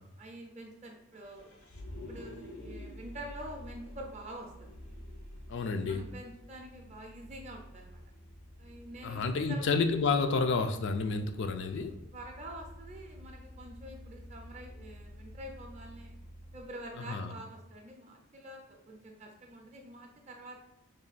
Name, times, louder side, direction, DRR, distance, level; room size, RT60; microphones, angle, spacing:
voice 1, 0.2-1.6 2.1-4.8 5.9-8.0 8.6-9.6 11.8-16.2 16.5-20.7, right 1 dB, 30° right, 1 dB, 0.4 m, -47 dB
Vehicle, 1.1-16.6, left 1 dB, 80° left, 0.7 m, -49 dB
voice 2, 5.5-6.0 9.0-11.9 17.1-17.3, left 4 dB, 55° left, 7 dB, 0.3 m, -30 dB
3.3 x 2.2 x 3.9 m, 0.92 s
head